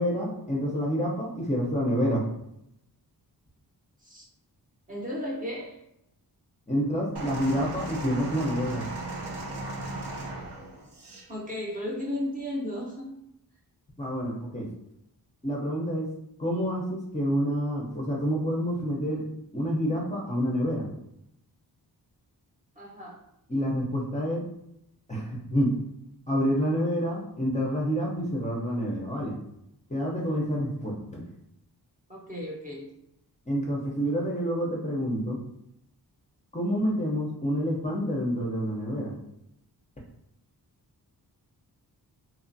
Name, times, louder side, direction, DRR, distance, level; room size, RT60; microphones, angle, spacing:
voice 1, 0.0-2.2 6.7-8.8 14.0-14.7 15.4-16.1 16.4-19.2 19.5-20.9 23.5-24.4 25.1-25.7 26.3-29.3 29.9-31.2 33.5-35.4 36.5-39.1, equal, 20° left, -4 dB, 0.6 m, -28 dB
voice 2, 4.9-5.8 11.3-13.2 22.8-23.2 32.1-32.9, left 1 dB, 20° right, -4 dB, 0.7 m, -34 dB
sound 1, 7.2-11.3 12.2-12.3, right 2 dB, 85° right, 0.7 m, -36 dB
2.9 x 2.4 x 2.6 m, 0.80 s
wide cardioid pair, 110°, 40 cm